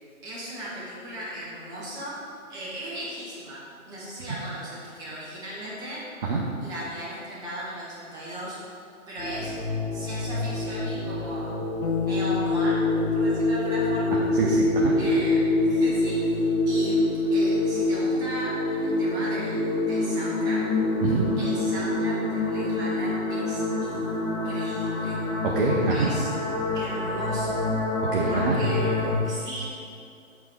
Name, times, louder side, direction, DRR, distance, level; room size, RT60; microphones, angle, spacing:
voice 1, 0.2-2.2 2.5-6.0 6.6-8.6 9.1-9.5 9.9-11.5 11.8-14.2 15.0-17.0 17.3-20.6 21.4-25.2 25.9-26.3 26.7-27.6 28.2-29.7, equal, 10° right, -7 dB, 1.0 m, -37 dB
sound 1, 9.2-29.1, left 2 dB, 15° left, 0.7 m, -26 dB
sound 2, 11.8-21.6, left 7 dB, 50° left, 0.5 m, -34 dB
voice 2, 14.4-15.0 21.0-21.3 25.4-26.1 28.1-28.6, right 4 dB, 40° right, -3 dB, 0.8 m, -24 dB
7.8 x 4.2 x 4.8 m, 2.3 s
figure-of-eight pair, 145°, 42 cm